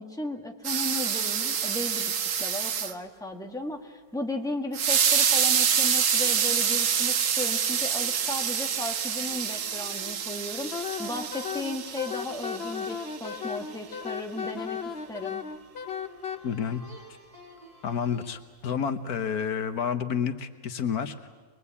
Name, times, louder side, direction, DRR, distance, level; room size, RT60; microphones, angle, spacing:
voice 1, 0.0-2.1 2.4-10.7 11.0-15.4, left 1 dB, ahead, 2 dB, 1.6 m, -35 dB
sound 1, 0.6-2.9 4.7-13.1, right 7 dB, 60° right, 1.2 m, -27 dB
sound 2, 5.6-18.4, equal, 20° right, 3.2 m, -52 dB
Wind instrument woodwind instrument, 10.7-16.4, left 6 dB, 50° left, 1.0 m, -35 dB
voice 2, 16.4-16.8 17.8-21.3, left 7 dB, 90° left, 9 dB, 1.6 m, -30 dB
23.5 x 21.5 x 8.5 m, 1.4 s
omnidirectional pair, 1.6 m